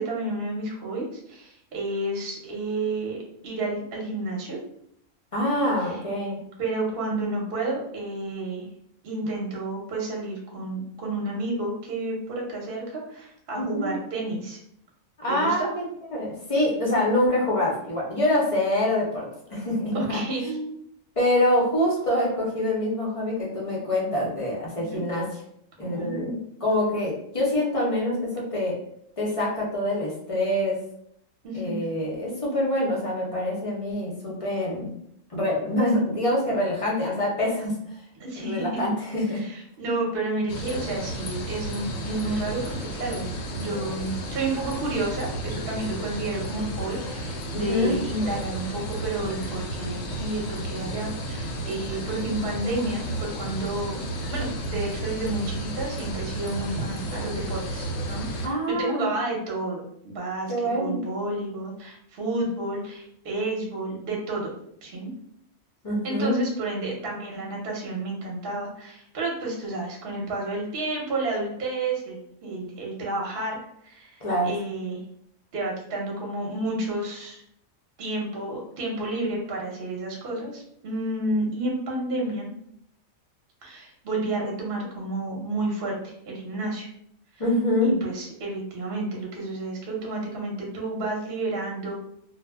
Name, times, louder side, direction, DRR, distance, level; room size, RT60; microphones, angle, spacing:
voice 1, 0.0-3.2 3.4-4.6 5.8-6.0 6.6-8.7 9.0-14.6 15.3-15.7 19.9-20.5 24.7-25.0 25.8-26.4 31.4-31.8 38.2-38.6 39.3-43.3 43.5-54.0 54.3-64.5 64.8-65.1 66.0-75.0 75.5-77.4 78.0-82.5 83.6-86.9 87.8-91.9, right 2 dB, 50° right, -2 dB, 0.8 m, -31 dB
voice 2, 5.3-6.4 13.6-13.9 15.2-15.8 16.1-20.7 21.2-25.4 25.8-28.8 29.2-30.8 31.5-34.9 35.3-37.7 38.4-39.4 47.5-48.0 58.4-59.1 60.5-61.0 65.8-66.4 74.2-74.5 87.4-87.9, left 1 dB, 40° left, -4 dB, 0.5 m, -25 dB
sound 1, 40.5-58.5, right 1 dB, 80° left, 1.0 m, -33 dB
2.2 x 2.0 x 3.3 m, 0.71 s
omnidirectional pair, 1.4 m